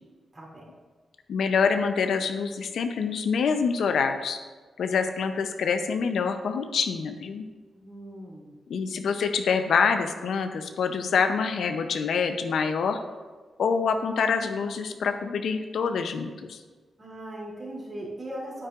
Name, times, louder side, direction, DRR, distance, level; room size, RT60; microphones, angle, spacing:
voice 1, 0.3-0.6 7.7-8.5 17.0-18.7, right 1 dB, 35° right, -4 dB, 2.7 m, -39 dB
voice 2, 1.3-4.4 4.8-7.5 8.7-13.0 13.6-16.6, left 5 dB, 80° left, 7 dB, 0.6 m, -26 dB
9.5 x 8.6 x 2.5 m, 1.4 s
cardioid pair, 95°, 0 cm